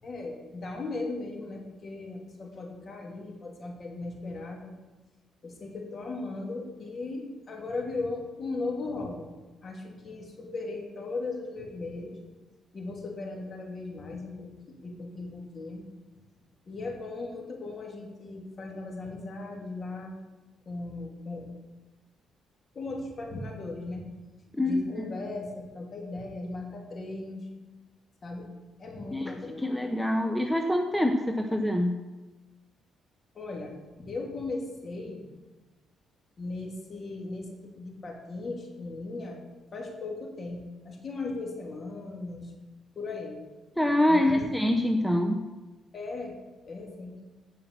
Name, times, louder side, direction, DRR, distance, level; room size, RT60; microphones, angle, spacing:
voice 1, 0.0-4.7 5.4-9.3 9.6-12.2 12.7-15.8 16.7-20.2 20.7-21.5 22.7-24.0 24.6-27.4 28.2-28.5 28.8-29.6 33.3-35.2 36.4-39.4 39.7-42.5 42.9-43.4 44.1-44.4 45.9-46.4 46.6-47.1, left 3 dB, 40° left, 1 dB, 3.1 m, -37 dB
voice 2, 24.6-25.1 29.1-29.3 29.6-32.0 43.8-45.4, left 1 dB, 5° left, 4 dB, 1.0 m, -25 dB
16.0 x 5.8 x 6.9 m, 1.2 s
cardioid pair, 90°, 0 cm